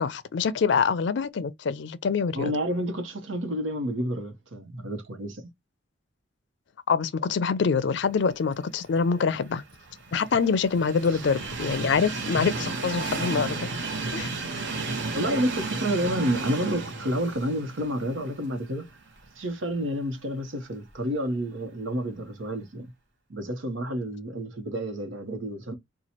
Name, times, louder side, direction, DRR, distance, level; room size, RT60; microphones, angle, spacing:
voice 1, 0.0-2.5 6.9-9.6 10.1-13.7 14.1-14.3, left 5 dB, 65° left, 0.4 m, -25 dB
voice 2, 2.3-5.5 11.1-11.3 15.1-18.9 19.4-22.9 23.3-25.7, equal, 90° right, 1.0 m, -30 dB
Train, 9.1-19.3 19.7-19.8 20.9-21.0, right 3 dB, 65° right, 0.9 m, -33 dB
3.0 x 2.3 x 4.1 m
head